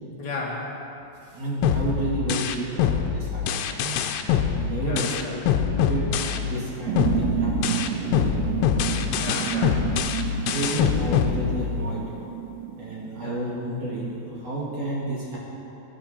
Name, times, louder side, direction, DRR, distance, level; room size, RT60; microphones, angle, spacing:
voice 1, 0.2-0.8 4.8-5.3 9.2-9.9 13.2-13.4, left 3 dB, 40° left, -4 dB, 1.6 m, -34 dB
voice 2, 1.2-4.0 4.5-8.5 10.2-12.0 12.8-15.4, right 2 dB, 45° right, -5 dB, 2.8 m, -31 dB
sound 1, 1.6-6.7 7.0-12.0, left 8 dB, 85° left, 2.7 m, -24 dB
sound 2, 6.8-13.8, right 9 dB, 80° right, 2.4 m, -30 dB
22.5 x 10.5 x 4.4 m, 2.9 s
omnidirectional pair, 4.9 m